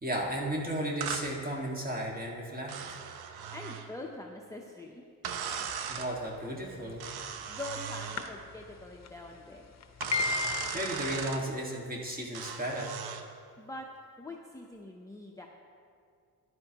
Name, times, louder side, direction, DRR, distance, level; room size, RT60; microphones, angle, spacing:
voice 1, 0.0-3.0 5.9-7.1 10.4-13.0, right 1 dB, 25° right, -2 dB, 1.9 m, -35 dB
sound 1, 1.0-1.3 2.7-3.9 5.2-6.1 7.0-8.3 10.0-11.4 12.3-13.3, right 7 dB, 80° right, 0.8 m, -38 dB
voice 2, 3.5-5.0 7.5-9.6 13.6-13.9 14.2-15.5, left 2 dB, 10° left, 0 dB, 0.7 m, -43 dB
sound 2, 6.9-7.3 8.2-8.3 8.5-8.6 9.0-9.1 9.8-11.2, left 5 dB, 45° left, 0.8 m, -32 dB
14.0 x 10.5 x 3.0 m, 2.3 s
cardioid pair, 95°, 37 cm